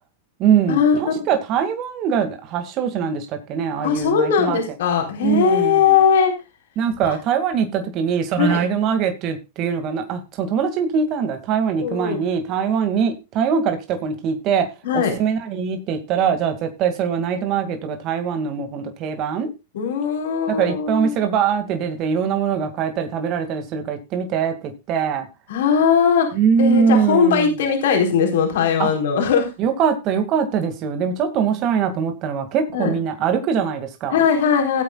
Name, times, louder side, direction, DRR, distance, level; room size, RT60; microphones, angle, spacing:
voice 1, 0.4-4.6 5.2-6.0 6.8-14.7 14.9-19.5 20.5-25.3 26.3-27.6 28.8-28.9 29.6-34.2, right 7 dB, 45° right, 7 dB, 2.1 m, -22 dB
voice 2, 3.8-6.3 8.4-8.6 11.8-12.2 14.8-15.1 19.7-21.2 25.5-26.3 26.6-29.5 32.7-32.9 34.1-34.8, left 7 dB, 70° left, 3 dB, 4.0 m, -19 dB
18.0 x 8.4 x 2.3 m, 0.27 s
hypercardioid pair, 110°, 0 cm